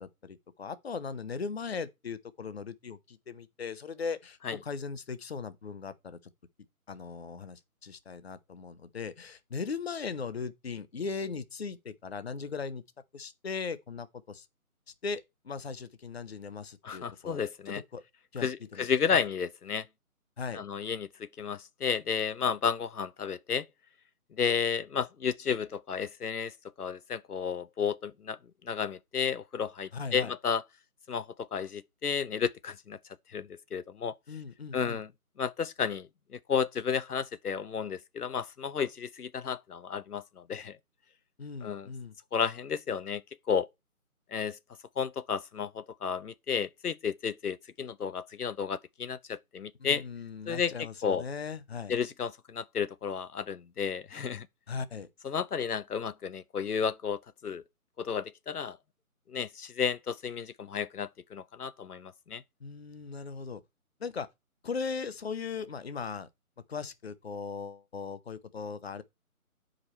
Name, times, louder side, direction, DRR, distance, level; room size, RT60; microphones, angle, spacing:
voice 1, 0.0-6.2 6.9-12.8 13.1-14.5 15.0-17.4 17.7-18.0 18.3-18.9 20.4-20.6 29.9-30.3 34.3-35.0 41.4-42.1 49.8-52.0 54.7-55.1 62.6-63.6 64.0-64.3 64.6-66.3 66.7-69.0, left 5 dB, 45° left, 0.8 m, -38 dB
voice 2, 16.8-17.8 18.4-19.8 20.5-23.6 24.4-26.5 26.8-28.4 28.7-30.6 31.1-33.0 33.3-34.1 34.7-35.1 35.4-36.1 36.3-40.8 41.6-41.9 42.3-43.2 43.5-43.7 44.3-44.6 45.0-50.0 50.5-50.7 51.0-51.2 51.9-54.5 55.2-57.6 58.0-58.8 59.3-62.4, left 6 dB, 85° left, 0.8 m, -32 dB
9.5 x 5.1 x 4.3 m
figure-of-eight pair, 160°, 44 cm